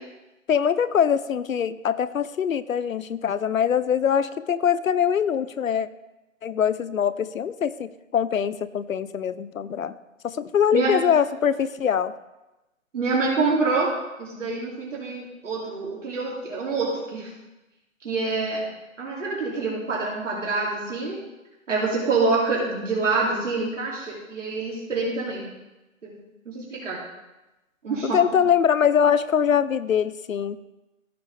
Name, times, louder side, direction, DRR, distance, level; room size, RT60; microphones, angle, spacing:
voice 1, 0.5-5.9 6.4-9.9 10.2-12.1 28.0-30.6, left 8 dB, 75° left, 16 dB, 0.6 m, -23 dB
voice 2, 12.9-13.9 14.2-17.3 18.0-18.6 19.0-21.2 21.7-25.4 26.0-26.1 26.5-27.0 27.8-28.2, right 3 dB, 65° right, -5 dB, 2.6 m, -26 dB
15.0 x 5.9 x 3.2 m, 1.0 s
figure-of-eight pair, 160°, 41 cm